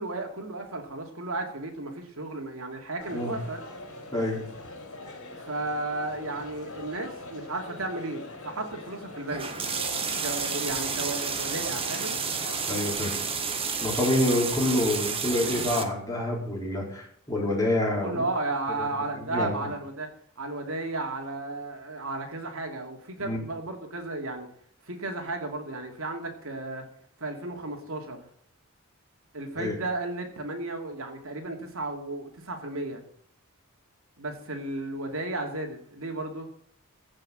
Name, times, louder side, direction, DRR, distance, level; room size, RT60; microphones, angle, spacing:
voice 1, 0.0-3.6 5.3-9.5 10.2-12.2 18.0-20.1 20.4-24.5 24.8-26.8 27.2-28.3 29.3-33.0 34.2-36.5, right 2 dB, 70° right, 3 dB, 2.7 m, -34 dB
Crowd, 3.0-12.9, left 2 dB, 75° left, 4.3 m, -43 dB
sound 1, 9.3-15.8, right 5 dB, 25° right, 1.5 m, -31 dB
voice 2, 12.7-13.1 13.8-18.2 18.8-19.7 23.2-23.4 29.6-29.8, left 1 dB, 15° left, -2 dB, 4.5 m, -27 dB
15.5 x 6.5 x 7.7 m, 0.63 s
head